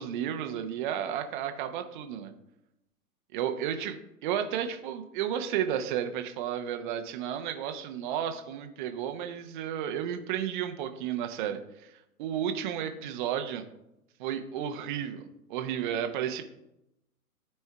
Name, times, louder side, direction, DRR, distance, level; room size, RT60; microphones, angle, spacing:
voice 1, 0.0-2.3 3.3-4.0 4.2-11.6 12.2-13.6 14.2-16.4, right 9 dB, 35° right, 7 dB, 0.7 m, -32 dB
12.5 x 4.4 x 2.3 m, 0.87 s
figure-of-eight pair, 115°, 45 cm